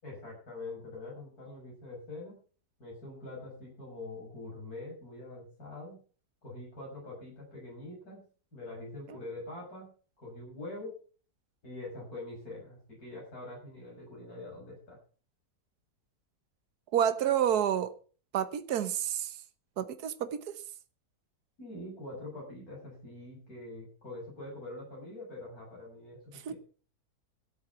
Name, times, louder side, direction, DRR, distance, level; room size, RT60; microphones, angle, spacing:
voice 1, 0.0-2.4 2.8-6.0 6.4-8.2 8.5-9.9 10.2-10.9 11.6-15.0 21.6-26.6, left 2 dB, 65° left, 7.5 m, -44 dB
voice 2, 16.9-17.9 18.3-19.3 19.8-20.4 26.4-26.5, right 9 dB, 75° right, 1.5 m, -29 dB
14.0 x 8.2 x 7.0 m
omnidirectional pair, 1.7 m